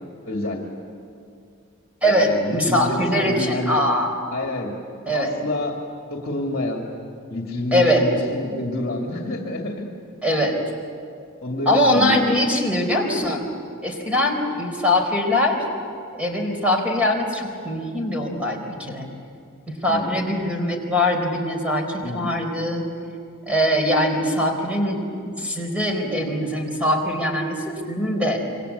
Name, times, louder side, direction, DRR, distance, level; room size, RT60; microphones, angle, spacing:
voice 1, 0.2-0.7 2.0-3.8 4.3-4.7 5.1-5.8 6.0-6.9 7.3-9.9 11.4-12.4 19.9-20.2 22.0-22.3, left 1 dB, 45° left, 0 dB, 2.6 m, -28 dB
voice 2, 2.0-4.2 5.1-5.3 7.7-8.1 10.2-10.6 11.7-13.5 13.8-15.7 16.1-19.1 19.7-22.8 23.5-25.0 25.2-28.4, left 1 dB, 5° right, 2 dB, 4.1 m, -22 dB
27.5 x 24.5 x 8.3 m, 2.4 s
head